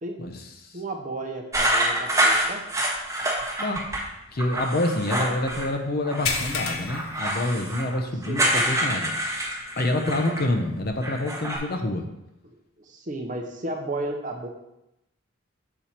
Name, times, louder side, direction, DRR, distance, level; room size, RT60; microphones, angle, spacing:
voice 1, 0.2-0.8 3.6-3.8 4.3-9.1 9.8-12.1, left 1 dB, 45° left, 5 dB, 0.6 m, -27 dB
voice 2, 0.7-2.7 5.2-5.3 8.3-8.7 9.9-10.3 12.4-14.5, right 2 dB, 35° right, 3 dB, 0.7 m, -34 dB
sound 1, 1.5-4.0 4.4-5.7 6.0-10.5 10.8-11.6, right 1 dB, 15° right, 1.0 m, -26 dB
sound 2, 6.3-8.1 8.5-8.7 9.2-9.3 10.9-11.0, left 5 dB, 80° left, 0.7 m, -31 dB
6.8 x 4.4 x 4.3 m, 0.88 s
head